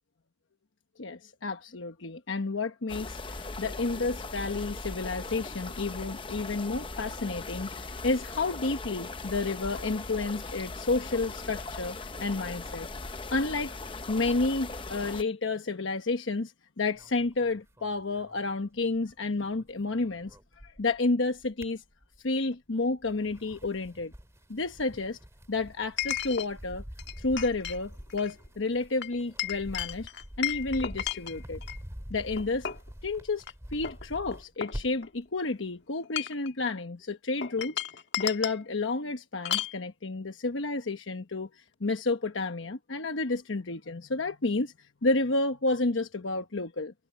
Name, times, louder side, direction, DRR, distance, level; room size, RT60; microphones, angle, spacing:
voice 1, 1.0-12.9 13.3-13.8 14.1-20.4 20.6-21.8 22.2-24.1 24.5-25.2 25.5-26.8 27.2-30.1 30.4-31.6 32.1-32.7 33.0-33.4 33.7-37.8 38.2-46.9, left 3 dB, 85° left, 1.1 m, -31 dB
sound 1, 2.9-15.2, left 3 dB, 25° left, 0.8 m, -39 dB
sound 2, 16.9-19.1 19.4-21.0 21.4-22.4 22.9-35.1, equal, 15° right, 2.3 m, -46 dB
Chink clink, 22.5-22.6 26.0-26.5 27.0-27.8 28.1-28.3 29.0-31.8 32.4-32.9 33.4-33.5 33.8-35.3 36.0-36.5 37.4-38.6 39.4-39.8, left 10 dB, 65° left, 1.4 m, -34 dB
head